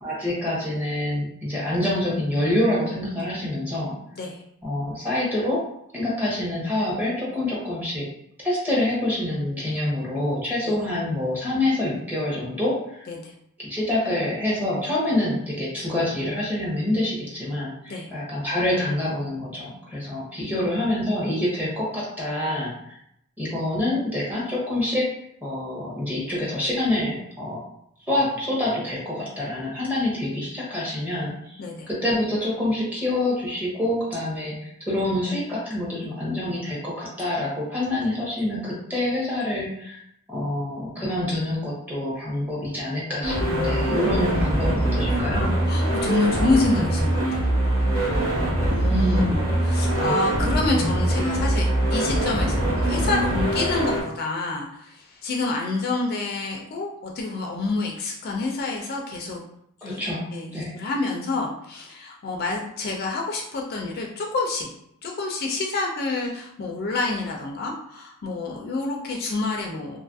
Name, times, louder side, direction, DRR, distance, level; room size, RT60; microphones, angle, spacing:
voice 1, 0.0-4.0 4.6-5.6 5.9-8.1 8.4-13.0 13.6-23.0 23.4-25.1 25.4-27.6 28.1-31.5 31.9-40.0 40.3-45.5 48.9-49.3 49.9-50.2 59.8-60.7, left 1 dB, 10° right, -6 dB, 0.8 m, -26 dB
sound 1, 43.2-54.0, right 1 dB, 70° right, 1.0 m, -23 dB
voice 2, 45.7-47.4 48.7-59.4 59.8-60.0 60.3-64.7 65.0-70.0, left 3 dB, 45° left, 0 dB, 0.3 m, -28 dB
2.5 x 2.4 x 2.5 m, 0.74 s
head